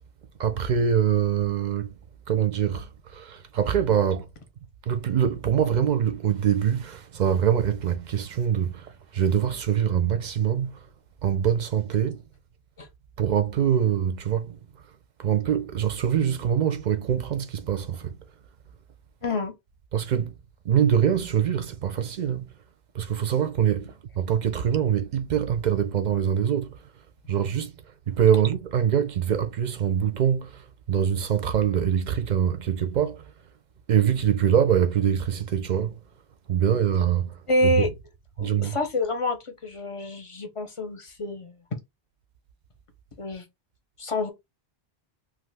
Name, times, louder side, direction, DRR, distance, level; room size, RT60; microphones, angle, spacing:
voice 1, 0.4-1.9 2.3-4.3 4.9-10.8 11.2-12.2 13.2-14.6 15.2-18.1 19.9-20.3 20.6-22.5 22.9-26.8 27.3-27.7 28.1-33.2 33.9-35.9 36.5-37.9 38.4-38.8, right 8 dB, 55° right, 0.6 m, -24 dB
voice 2, 19.2-19.5 37.5-37.9 38.4-41.6 43.2-43.4 44.0-44.3, left 1 dB, 35° left, 0.6 m, -27 dB
2.6 x 2.4 x 3.3 m
omnidirectional pair, 1.0 m